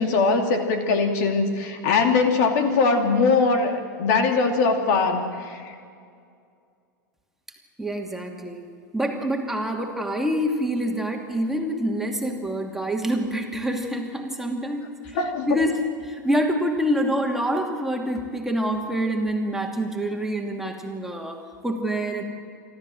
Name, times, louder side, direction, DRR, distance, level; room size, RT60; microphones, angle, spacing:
voice 1, 0.0-5.6 15.1-15.5, left 4 dB, 65° left, 5 dB, 2.7 m, -21 dB
voice 2, 7.8-8.6 8.9-15.2 15.5-22.2, equal, 5° right, 2 dB, 2.6 m, -26 dB
27.5 x 13.0 x 7.8 m, 2.3 s
hypercardioid pair, 105°, 10 cm